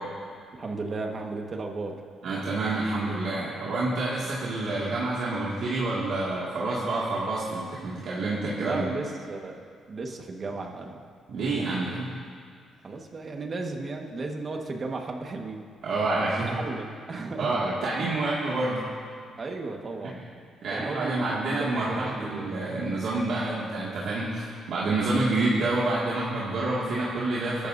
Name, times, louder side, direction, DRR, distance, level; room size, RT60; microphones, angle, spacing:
voice 1, 0.5-2.0 8.6-11.0 12.8-15.6 16.3-17.5 18.0-18.3 19.4-20.2 20.7-22.5, right 3 dB, 40° right, 2 dB, 1.5 m, -35 dB
voice 2, 2.2-8.8 11.3-12.1 15.8-16.6 17.4-18.8 20.6-27.7, right 2 dB, 65° right, -7 dB, 2.2 m, -28 dB
23.0 x 11.5 x 2.7 m, 2.2 s
cardioid pair, 90°, 0 cm